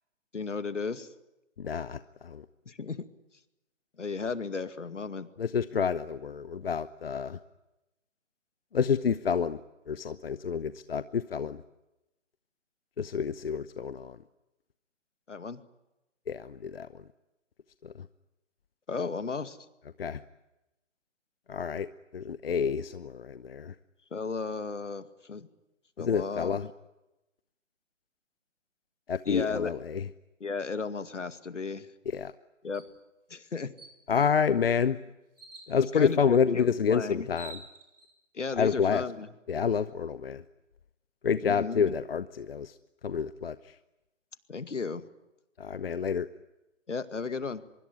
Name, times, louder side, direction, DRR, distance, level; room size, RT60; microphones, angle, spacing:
voice 1, 0.3-1.1 2.7-3.1 4.0-5.3 15.3-15.6 18.9-19.6 24.1-25.5 26.0-26.6 29.3-29.7 30.4-31.9 32.6-32.8 33.3-33.7 35.8-37.3 38.3-39.3 41.4-41.9 44.5-45.0 46.9-47.6, left 4 dB, 70° left, 13 dB, 2.3 m, -34 dB
voice 2, 1.6-2.4 5.4-7.4 8.7-9.6 9.9-11.6 13.0-14.2 16.3-16.9 17.8-17.9 20.0-20.2 21.5-21.9 22.1-23.7 26.0-26.7 29.1-30.1 32.1-32.3 34.1-35.0 35.7-37.6 38.6-39.0 39.5-40.4 41.2-42.7 43.0-43.6 45.6-46.3, left 6 dB, 50° left, 15 dB, 1.0 m, -28 dB
sound 1, 32.7-32.9 33.4-33.5 33.8-34.4 35.4-35.7 36.8-36.9 37.2-38.1, right 2 dB, 75° right, 7.9 m, -48 dB
24.5 x 23.5 x 9.8 m, 0.96 s
figure-of-eight pair, 145°, 37 cm